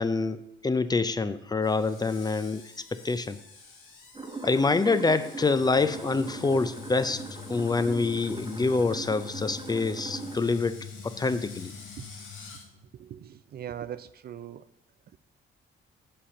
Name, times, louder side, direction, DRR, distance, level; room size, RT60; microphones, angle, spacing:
voice 1, 0.0-2.6 2.9-3.4 4.4-7.2 7.5-10.8 11.0-11.7, left 3 dB, 20° left, 12 dB, 0.5 m, -26 dB
Screech, 1.6-12.7, left 4 dB, 90° left, 1.8 m, -49 dB
sound 1, 4.1-10.4, right 3 dB, 25° right, 0.9 m, -40 dB
sound 2, 5.5-12.8, left 7 dB, 70° left, 0.7 m, -45 dB
voice 2, 12.9-14.7, right 10 dB, 50° right, 14 dB, 0.4 m, -40 dB
7.6 x 4.2 x 6.7 m, 0.79 s
cardioid pair, 90°, 20 cm